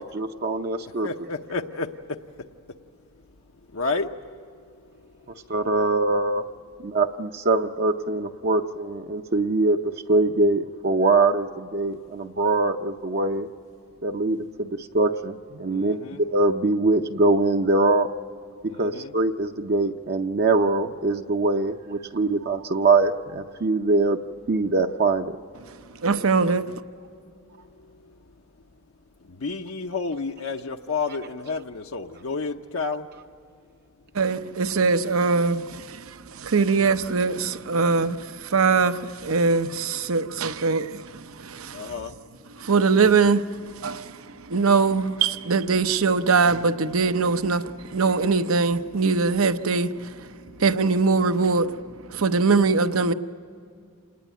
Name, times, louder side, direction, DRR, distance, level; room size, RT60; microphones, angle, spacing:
voice 1, 0.0-1.1 5.5-6.4 6.8-13.5 14.0-18.1 18.6-24.2 24.5-25.3, right 3 dB, 50° right, 0.7 m, -23 dB
voice 2, 1.0-1.9 3.7-4.1 15.7-16.2 18.7-19.1 29.4-33.1 41.7-42.1, left 4 dB, 75° left, 0.8 m, -30 dB
voice 3, 26.0-26.7 34.1-36.0 36.4-41.9 42.6-43.4 43.8-44.2 44.5-50.1 50.6-51.7 52.1-53.1, right 4 dB, 80° right, 0.8 m, -22 dB
27.5 x 20.0 x 9.2 m
head